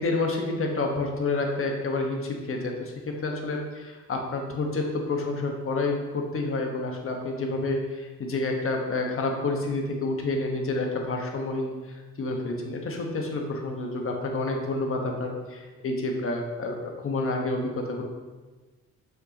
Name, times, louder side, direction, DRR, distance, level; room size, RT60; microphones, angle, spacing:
voice 1, 0.0-18.0, left 2 dB, 45° left, 1 dB, 1.3 m, -29 dB
6.7 x 6.4 x 2.9 m, 1.3 s
cardioid pair, 90°, 30 cm